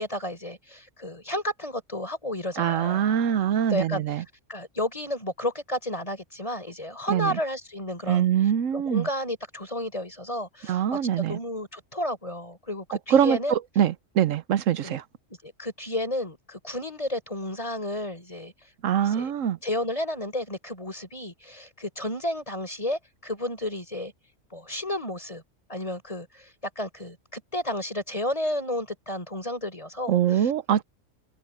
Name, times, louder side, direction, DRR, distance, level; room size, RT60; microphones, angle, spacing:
voice 1, 0.0-3.0 3.7-4.0 4.5-8.3 8.7-13.6 14.8-15.0 15.4-18.5 19.0-19.3 19.6-24.1 24.5-25.4 25.7-30.5, left 1 dB, 25° left, 5.3 m, -32 dB
voice 2, 2.6-4.2 7.1-7.4 8.1-9.1 10.7-11.4 13.1-15.0 18.8-19.6 30.1-30.8, right 9 dB, 85° right, 1.1 m, -23 dB
omnidirectional pair, 1.3 m